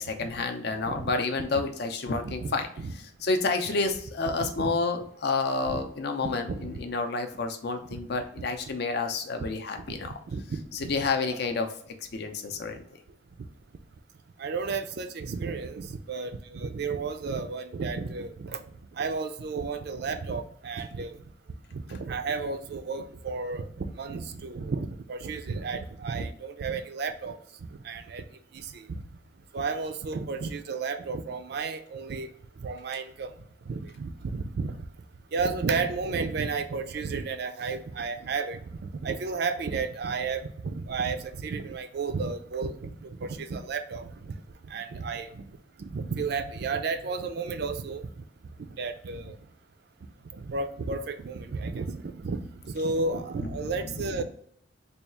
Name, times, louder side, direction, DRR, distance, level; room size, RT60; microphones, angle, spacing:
voice 1, 0.0-2.7 3.2-10.1 10.7-11.7 12.1-12.8 53.6-54.2, left 3 dB, 55° left, 5 dB, 0.5 m, -29 dB
voice 2, 2.2-2.9 3.7-3.8 4.6-4.7 5.7-5.8 6.5-6.8 7.9-8.0 8.4-8.5 9.8-11.4 12.7-12.8 14.4-18.6 18.9-21.2 21.7-27.4 27.8-28.2 28.5-29.0 29.5-32.3 32.6-33.3 33.7-34.8 35.3-44.3 44.6-45.4 45.8-48.2 48.6-49.4 50.3-54.2, right 4 dB, 55° right, 9 dB, 0.4 m, -33 dB
3.4 x 2.3 x 4.2 m, 0.65 s
head